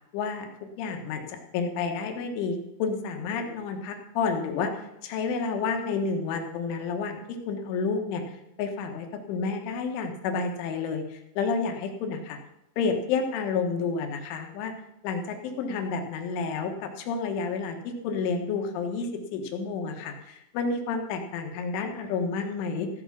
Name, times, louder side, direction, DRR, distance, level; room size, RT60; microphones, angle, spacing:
voice 1, 0.1-0.5 0.8-4.7 5.0-12.4 12.8-14.7 15.0-22.9, left 5 dB, 80° left, 4 dB, 3.7 m, -30 dB
14.5 x 7.2 x 5.9 m, 0.86 s
omnidirectional pair, 5.6 m